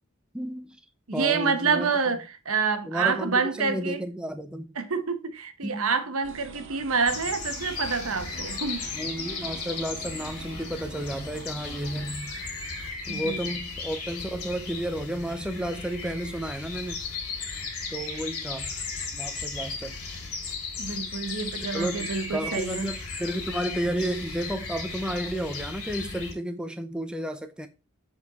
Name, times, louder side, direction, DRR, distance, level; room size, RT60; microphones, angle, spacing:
voice 1, 0.3-0.8 1.1-1.9 2.9-4.8 5.6-5.9 8.9-12.4 13.1-17.0 17.9-18.7 19.1-20.0 21.7-27.7, right 1 dB, 5° right, 0.6 m, -32 dB
voice 2, 1.1-4.0 4.8-8.9 13.1-13.4 20.8-22.9, right 5 dB, 75° right, 1.1 m, -27 dB
sound 1, 6.2-12.1, right 4 dB, 55° right, 0.6 m, -45 dB
sound 2, 7.1-26.3, left 4 dB, 80° left, 2.5 m, -36 dB
7.2 x 4.4 x 4.1 m
head